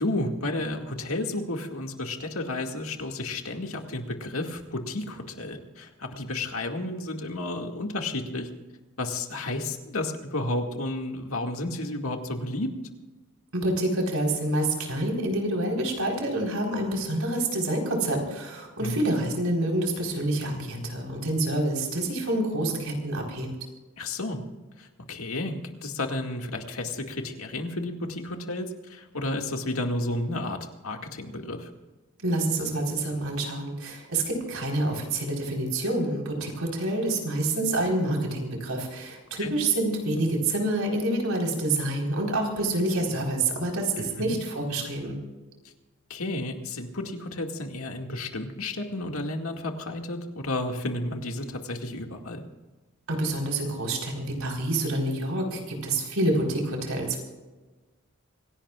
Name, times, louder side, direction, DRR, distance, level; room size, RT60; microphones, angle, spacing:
voice 1, 0.0-8.5 9.0-12.7 18.8-19.0 24.0-24.4 24.8-30.6 30.8-31.7 39.4-39.5 44.0-44.4 45.6-45.7 46.1-52.4, left 2 dB, 90° left, 3 dB, 2.2 m, -32 dB
voice 2, 13.5-23.5 32.2-45.2 53.1-57.2, right 1 dB, 85° right, 0 dB, 4.5 m, -27 dB
26.5 x 17.0 x 2.5 m, 1.2 s
head